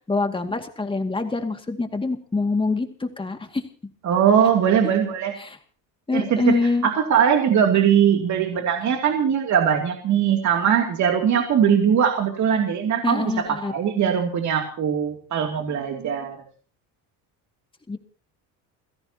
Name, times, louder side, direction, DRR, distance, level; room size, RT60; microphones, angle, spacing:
voice 1, 0.1-3.6 4.8-4.9 5.4-5.6 6.1-6.9 13.0-13.7 17.9-18.0, left 3 dB, 15° left, 6 dB, 2.2 m, -25 dB
voice 2, 4.0-5.3 6.1-6.6 6.8-13.3 13.7-16.4, right 8 dB, 50° right, 2 dB, 2.8 m, -20 dB
29.5 x 16.0 x 2.9 m, 0.42 s
cardioid pair, 125°, 37 cm